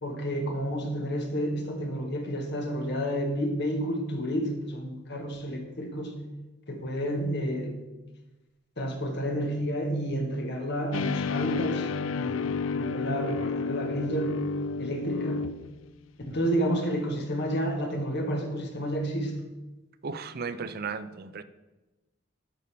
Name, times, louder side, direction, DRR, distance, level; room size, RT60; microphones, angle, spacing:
voice 1, 0.0-6.2 6.7-7.7 8.8-14.4 14.8-15.4 16.3-19.3, equal, 60° left, 3 dB, 1.5 m, -30 dB
sound 1, 10.9-15.9, left 4 dB, 90° left, 0.4 m, -31 dB
voice 2, 20.0-21.4, right 5 dB, 55° right, 12 dB, 0.5 m, -35 dB
10.5 x 4.0 x 6.7 m, 1.1 s
head